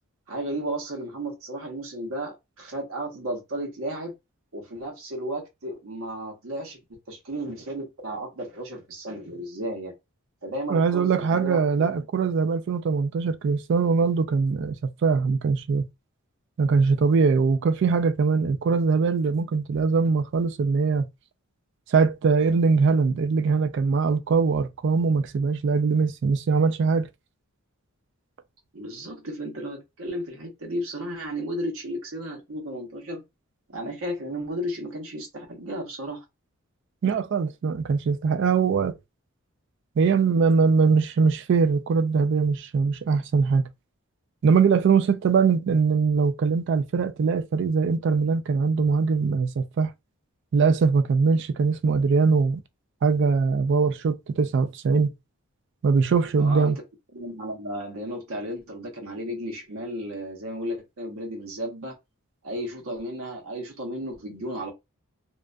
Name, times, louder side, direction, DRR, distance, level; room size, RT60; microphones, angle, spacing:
voice 1, 0.3-4.1 4.5-6.8 7.1-9.9 10.4-11.9 28.7-33.2 33.7-36.2 56.4-56.7 57.1-61.9 62.4-64.7, right 1 dB, 75° right, 0.9 m, -34 dB
voice 2, 10.7-14.8 15.0-15.8 16.6-21.1 21.9-27.1 37.0-39.0 40.0-43.6 44.4-49.9 50.5-52.6 53.0-55.1 55.8-56.8, right 5 dB, 55° right, 0.3 m, -22 dB
2.4 x 2.1 x 2.4 m
head